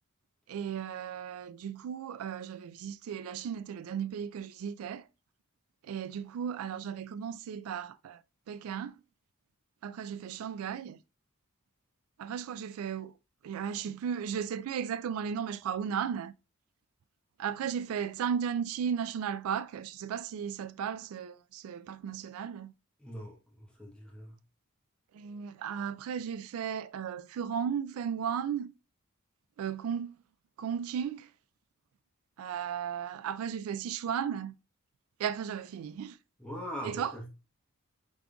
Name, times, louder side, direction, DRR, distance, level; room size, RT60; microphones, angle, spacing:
voice 1, 0.5-5.1 5.8-8.2 8.5-9.0 9.8-11.0 12.2-13.2 13.4-16.3 17.4-22.7 25.1-28.7 29.6-30.2 30.6-31.3 32.4-34.5 35.2-36.2 36.8-37.1, right 8 dB, 90° right, 0.3 m, -35 dB
voice 2, 23.0-24.4 36.4-37.3, equal, 5° left, 1.0 m, -42 dB
5.2 x 3.6 x 2.3 m
head